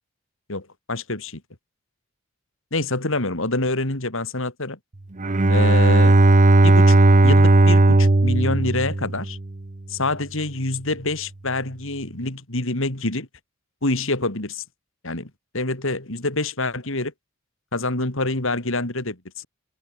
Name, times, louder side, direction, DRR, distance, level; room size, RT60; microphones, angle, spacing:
voice 1, 0.5-1.4 2.7-4.8 5.5-6.2 6.6-9.4 9.9-13.3 13.8-14.6 15.0-17.1 17.7-19.5, left 2 dB, 65° left, 3.8 m, -26 dB
Bowed string instrument, 5.2-9.5, right 2 dB, 40° right, 0.9 m, -15 dB
head